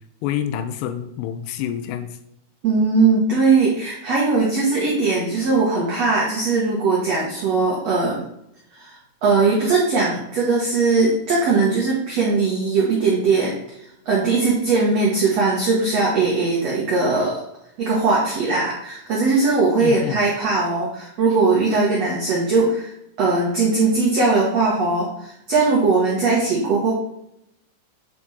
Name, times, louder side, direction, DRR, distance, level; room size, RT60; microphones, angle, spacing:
voice 1, 0.2-2.2 19.8-20.2, left 10 dB, 90° left, 8 dB, 2.8 m, -27 dB
voice 2, 2.6-8.2 8.7-13.8 14.0-17.4 17.8-22.9 23.2-26.9, right 3 dB, 60° right, -4 dB, 1.7 m, -20 dB
8.4 x 4.5 x 4.2 m, 0.77 s
omnidirectional pair, 4.9 m